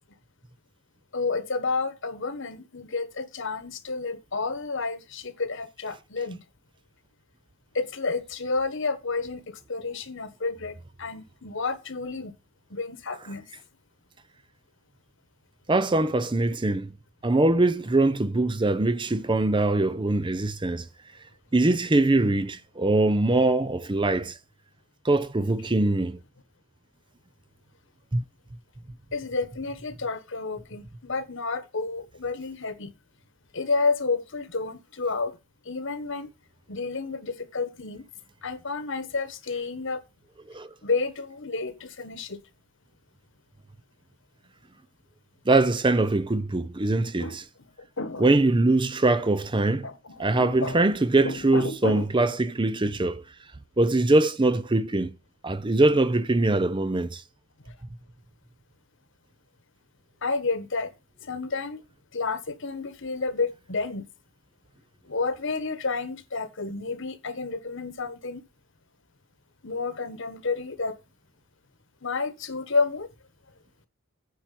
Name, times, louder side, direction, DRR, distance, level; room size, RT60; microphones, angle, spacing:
voice 1, 1.1-6.4 7.7-12.3 12.7-13.5 29.1-32.9 33.5-35.3 35.6-36.3 36.7-38.0 38.4-40.0 40.8-42.4 47.2-47.4 47.8-48.3 49.8-50.8 51.2-52.0 60.2-60.9 61.2-61.8 62.1-64.1 65.1-68.4 69.6-70.9 72.0-73.1, left 4 dB, 60° left, 1.3 m, -30 dB
voice 2, 15.7-16.9 17.2-20.9 21.5-24.3 25.0-26.2 28.1-28.2 40.5-40.7 45.5-47.4 48.2-49.9 50.2-53.2 53.8-55.1 55.4-57.2, right 2 dB, 20° right, 0.6 m, -22 dB
9.5 x 4.4 x 7.6 m
head